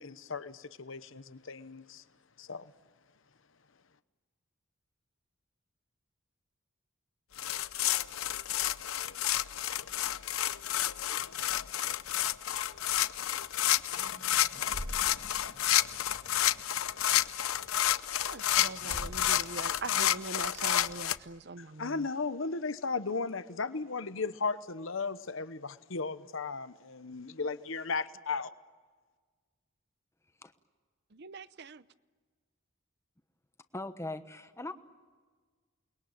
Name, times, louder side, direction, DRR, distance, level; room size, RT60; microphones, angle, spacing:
voice 1, 0.0-2.0 2.4-2.7 21.6-28.5, left 4 dB, 70° left, 1.0 m, -36 dB
sound 1, 7.4-21.1, left 12 dB, 85° left, 0.7 m, -30 dB
sound 2, 11.1-21.3, equal, 85° right, 4.8 m, -49 dB
voice 2, 18.2-22.1 31.1-31.8, right 3 dB, 50° right, 0.7 m, -42 dB
voice 3, 33.7-34.7, left 2 dB, 15° left, 1.1 m, -40 dB
28.5 x 21.0 x 9.0 m
head